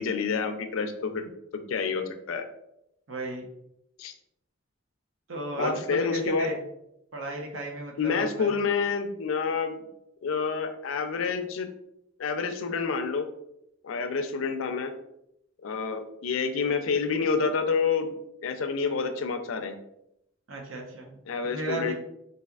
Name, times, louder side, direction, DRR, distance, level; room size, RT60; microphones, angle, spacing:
voice 1, 0.0-2.4 4.0-4.1 5.6-6.5 8.0-9.9 10.2-11.7 12.2-13.3 13.8-14.9 15.6-18.2 18.4-19.7 21.3-21.9, left 5 dB, 80° left, 7 dB, 0.4 m, -28 dB
voice 2, 3.1-3.4 5.3-6.6 7.1-8.5 20.5-21.9, right 1 dB, 75° right, 0 dB, 0.8 m, -34 dB
4.0 x 2.8 x 2.3 m, 0.80 s
head